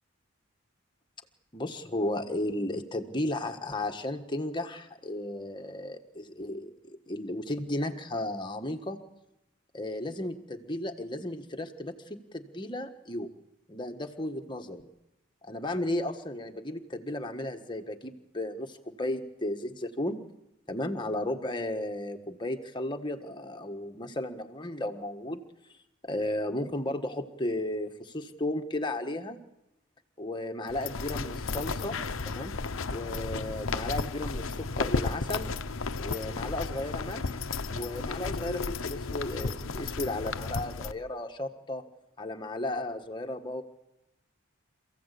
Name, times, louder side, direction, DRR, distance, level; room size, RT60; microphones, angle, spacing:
voice 1, 1.5-9.0 9.7-13.3 13.7-14.9 15.4-20.2 20.7-25.4 25.7-25.8 26.0-29.4 30.2-32.0 32.2-32.5 32.9-35.5 36.0-37.4 37.7-41.8 42.2-43.6, left 1 dB, 20° left, 5 dB, 1.5 m, -34 dB
sound 1, 30.7-40.9, left 4 dB, 70° left, 0.9 m, -33 dB
27.5 x 16.0 x 8.4 m, 0.92 s
head